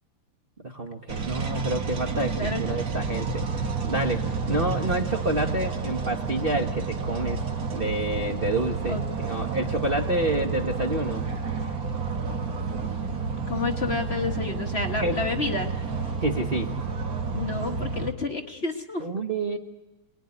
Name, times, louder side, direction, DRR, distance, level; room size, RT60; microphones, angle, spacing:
voice 1, 0.6-7.4 7.7-11.2 15.0-15.2 16.2-16.7 19.0-19.6, right 2 dB, 35° right, 1 dB, 1.2 m, -28 dB
sound 1, 1.1-18.1, right 4 dB, 50° right, 1.9 m, -30 dB
voice 2, 13.5-15.7 17.3-19.1, left 3 dB, 35° left, 3 dB, 1.5 m, -29 dB
28.0 x 19.5 x 9.9 m, 1.1 s
omnidirectional pair, 2.2 m